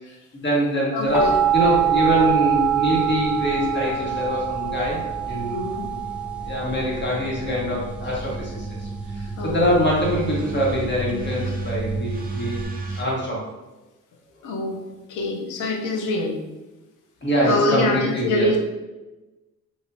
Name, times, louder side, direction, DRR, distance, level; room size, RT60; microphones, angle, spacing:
voice 1, 0.3-5.7 6.4-12.6 13.0-13.5 17.2-18.5, equal, 35° left, -4 dB, 1.5 m, -24 dB
voice 2, 0.9-1.4 5.5-5.9 9.4-9.6 11.4-11.5 12.9-13.0 14.4-16.4 17.4-18.6, left 2 dB, 85° left, 2 dB, 0.7 m, -25 dB
sound 1, 1.1-12.6, right 9 dB, 5° right, 0.5 m, -25 dB
sound 2, 2.9-13.0, right 3 dB, 30° right, 0.8 m, -34 dB
4.5 x 2.6 x 2.7 m, 1.1 s
cardioid pair, 90°, 30 cm